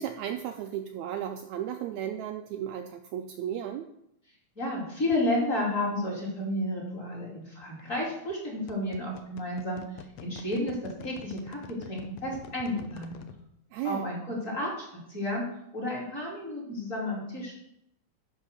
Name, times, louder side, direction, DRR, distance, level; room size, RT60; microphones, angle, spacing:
voice 1, 0.0-3.9 13.7-14.0, right 10 dB, 80° right, 6 dB, 1.7 m, -34 dB
voice 2, 4.6-9.8 10.2-13.1 13.8-15.5 15.7-17.6, left 1 dB, 25° left, -5 dB, 2.8 m, -31 dB
sound 1, 5.1-5.3 7.6-7.8 8.3-13.4, left 9 dB, 75° left, 1.5 m, -46 dB
11.0 x 4.1 x 6.5 m, 0.76 s
omnidirectional pair, 3.6 m